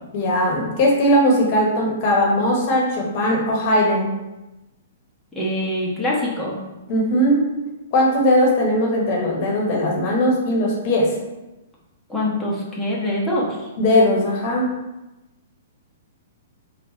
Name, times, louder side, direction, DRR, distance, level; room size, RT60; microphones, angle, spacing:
voice 1, 0.1-4.1 6.9-7.4 7.9-11.1 13.8-14.7, equal, 45° left, -2 dB, 1.1 m, -19 dB
voice 2, 5.3-6.6 12.1-13.7, left 1 dB, 5° left, -6 dB, 1.0 m, -24 dB
3.9 x 2.4 x 4.0 m, 1.0 s
hypercardioid pair, 120°, 0 cm